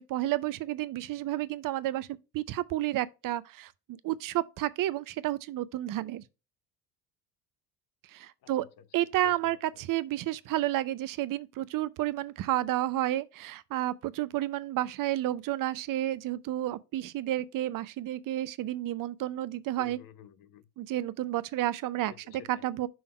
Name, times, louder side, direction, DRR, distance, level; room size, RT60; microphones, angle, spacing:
voice 1, 0.0-2.1 2.3-6.2 8.1-8.6 8.9-20.0 20.8-22.1 22.5-22.9, right 14 dB, 45° right, 0.6 m, -31 dB
voice 2, 8.4-8.9 9.2-9.6 19.8-20.7 22.1-22.6, left 9 dB, 45° left, 0.9 m, -52 dB
6.2 x 3.5 x 4.5 m
hypercardioid pair, 60°, 47 cm